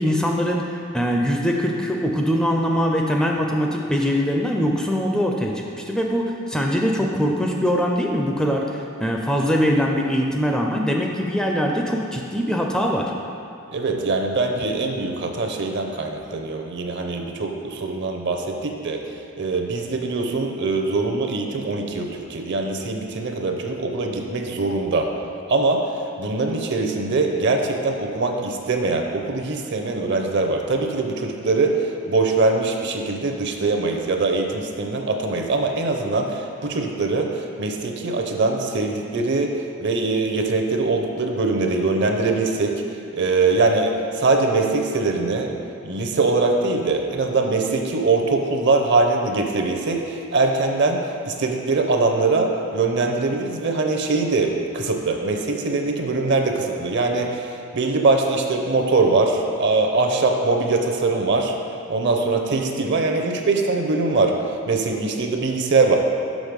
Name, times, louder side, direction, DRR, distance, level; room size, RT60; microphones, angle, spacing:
voice 1, 0.0-13.1, equal, 5° left, 0 dB, 0.4 m, -22 dB
voice 2, 13.7-19.0 19.4-25.1 25.5-25.8 26.2-31.8 32.1-37.3 37.6-39.5 39.8-42.7 43.1-45.5 45.8-61.5 61.9-64.4 64.7-66.0, right 3 dB, 55° right, 3 dB, 0.7 m, -22 dB
6.3 x 5.6 x 5.1 m, 2.6 s
head